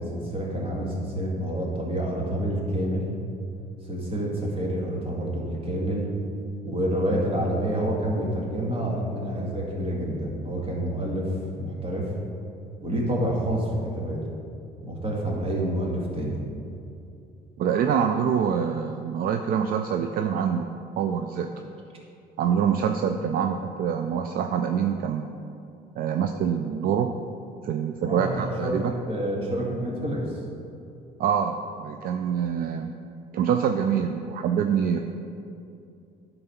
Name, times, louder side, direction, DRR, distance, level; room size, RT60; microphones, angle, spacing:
voice 1, 0.0-3.1 3.9-6.1 6.6-12.1 12.8-14.2 14.8-16.4 28.1-30.3, right 1 dB, 35° right, -2 dB, 1.9 m, -28 dB
voice 2, 17.6-20.7 21.0-21.5 22.4-25.3 26.0-27.1 27.6-28.9 31.2-33.0 33.3-35.0, right 7 dB, 60° right, 6 dB, 0.4 m, -25 dB
10.5 x 4.0 x 5.7 m, 2.6 s
cardioid pair, 110°, 17 cm